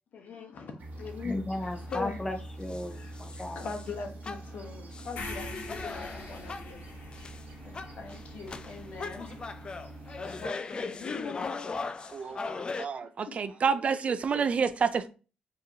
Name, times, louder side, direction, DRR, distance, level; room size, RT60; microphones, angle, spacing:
voice 1, 0.1-1.4 1.9-2.2 2.9-3.2 3.5-7.3 7.6-9.3 10.2-12.4 13.0-13.4, left 4 dB, 60° left, 4 dB, 1.0 m, -41 dB
sound 1, 0.8-10.5, right 1 dB, 65° right, 1.0 m, -45 dB
voice 2, 1.2-3.7 7.9-8.0, left 1 dB, 10° left, 6 dB, 0.7 m, -35 dB
sound 2, 1.6-2.3 2.7-3.9 4.2-6.8 7.1-7.4 7.7-12.9, left 4 dB, 30° left, 0.3 m, -39 dB
sound 3, 5.2-9.3, left 2 dB, 85° left, 1.0 m, -43 dB
voice 3, 12.1-15.1, right 6 dB, 45° right, 12 dB, 0.4 m, -29 dB
4.7 x 3.0 x 2.7 m, 0.34 s
cardioid pair, 105°, 3 cm